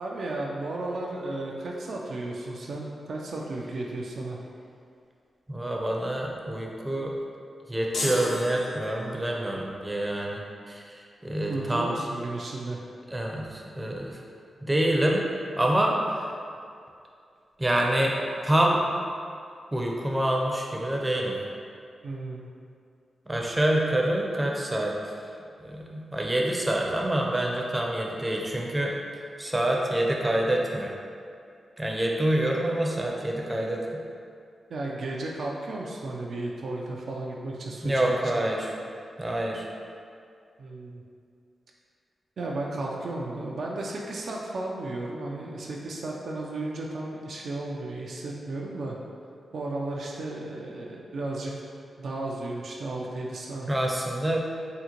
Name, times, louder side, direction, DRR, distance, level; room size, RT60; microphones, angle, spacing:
voice 1, 0.0-4.4 11.5-12.8 22.0-22.5 34.7-38.0 38.3-38.4 40.6-41.0 42.4-49.0 49.5-51.5 52.0-53.7, right 2 dB, 70° right, -2 dB, 0.3 m, -34 dB
voice 2, 5.5-7.1 7.7-12.0 13.1-14.2 14.6-15.2 15.6-16.3 17.6-18.8 19.7-21.4 23.3-25.1 25.6-28.9 29.4-30.9 31.8-34.0 37.8-38.7 39.2-39.6 53.7-54.4, right 1 dB, 20° right, -1 dB, 0.5 m, -26 dB
sound 1, 7.9-9.5, left 1 dB, 75° left, 0.5 m, -34 dB
3.7 x 2.1 x 2.9 m, 2.4 s
cardioid pair, 50°, 0 cm